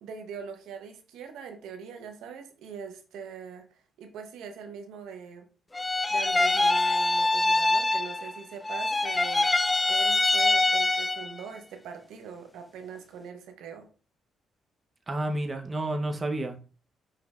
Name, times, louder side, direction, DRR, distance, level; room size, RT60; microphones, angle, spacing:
voice 1, 0.0-5.5 6.1-9.6 9.9-13.9, right 6 dB, 85° right, 0.7 m, -42 dB
sound 1, 5.7-8.4 8.6-11.4, left 2 dB, 20° left, 0.3 m, -24 dB
voice 2, 15.1-16.6, right 1 dB, 25° right, 0.7 m, -30 dB
5.8 x 3.2 x 2.3 m
cardioid pair, 90°, 0 cm